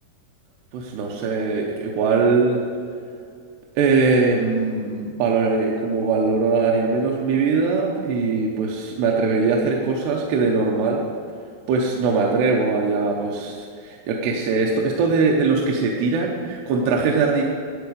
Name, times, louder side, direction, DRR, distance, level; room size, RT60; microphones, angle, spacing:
voice 1, 0.7-2.6 3.8-11.0 11.7-17.4, right 4 dB, 80° right, -1 dB, 3.0 m, -21 dB
11.5 x 8.3 x 6.7 m, 2.3 s
omnidirectional pair, 4.9 m